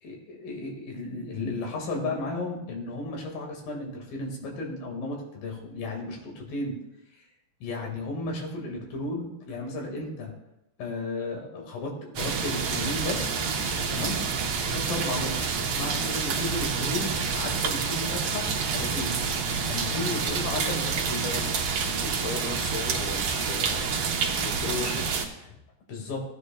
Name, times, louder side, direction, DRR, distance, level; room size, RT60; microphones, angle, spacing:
voice 1, 0.0-6.8 7.1-7.2 7.6-10.3 10.8-13.3 13.9-14.2 14.6-15.4 15.8-19.2 19.7-21.3 25.9-26.2, left 2 dB, 85° left, 0 dB, 3.7 m, -34 dB
sound 1, 12.1-25.2, right 5 dB, 80° right, 1.2 m, -28 dB
voice 2, 20.2-20.9 21.2-21.5 22.0-23.9 24.3-25.1 25.5-25.6, left 5 dB, 70° left, 4 dB, 2.4 m, -37 dB
16.5 x 9.5 x 2.3 m, 0.87 s
omnidirectional pair, 4.0 m